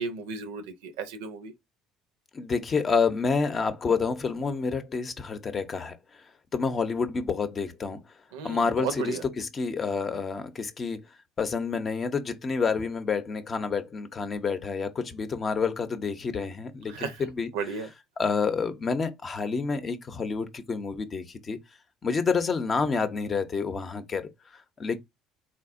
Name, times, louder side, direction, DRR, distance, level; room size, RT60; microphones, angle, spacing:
voice 1, 0.0-1.5 8.3-9.2 16.9-17.3 17.5-17.9, right 5 dB, 75° right, 0.6 m, -34 dB
voice 2, 2.3-6.2 6.5-8.0 8.4-11.0 11.4-17.5 18.2-21.6 22.0-25.0, left 5 dB, 35° left, 0.7 m, -28 dB
3.8 x 2.7 x 2.5 m
hypercardioid pair, 60°, 0 cm